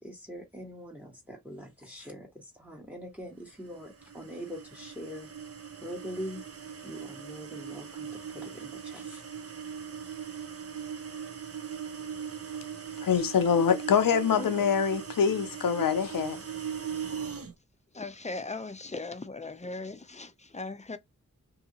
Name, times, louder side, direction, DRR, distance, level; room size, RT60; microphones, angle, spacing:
voice 1, 0.0-5.3 5.8-6.4 6.8-9.2, equal, 5° right, 1.2 m, -43 dB
sound 1, 3.6-17.5, right 7 dB, 45° right, 0.7 m, -40 dB
voice 2, 13.0-16.4, left 7 dB, 85° left, 0.5 m, -25 dB
voice 3, 14.3-14.7 17.9-21.0, left 3 dB, 20° left, 0.5 m, -38 dB
2.7 x 2.6 x 2.8 m
wide cardioid pair, 40°, 33 cm